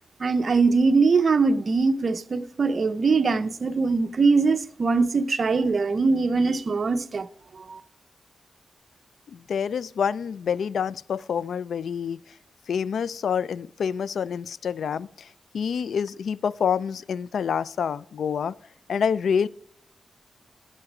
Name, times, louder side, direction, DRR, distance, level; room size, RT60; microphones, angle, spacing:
voice 1, 0.2-7.3 7.5-7.8, right 4 dB, 55° right, 0.7 m, -22 dB
voice 2, 9.3-12.2 12.7-15.3 15.5-18.5 18.9-19.5, left 7 dB, 85° left, 0.3 m, -27 dB
12.5 x 8.0 x 4.9 m
cardioid pair, 85°, 0 cm